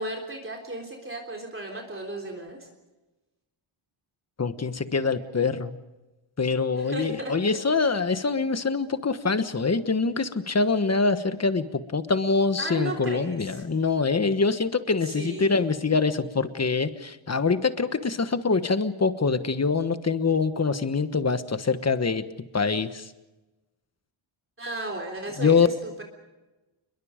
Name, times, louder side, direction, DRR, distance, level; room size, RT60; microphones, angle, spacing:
voice 1, 0.0-2.7 6.8-7.6 12.6-13.6 15.0-15.7 24.6-26.0, right 2 dB, 25° right, 1 dB, 3.6 m, -35 dB
voice 2, 4.4-5.8 6.4-22.3 22.5-23.1 25.4-25.7, left 4 dB, 30° left, 11 dB, 1.3 m, -24 dB
29.0 x 22.0 x 5.1 m, 1.1 s
wide cardioid pair, 140°, 49 cm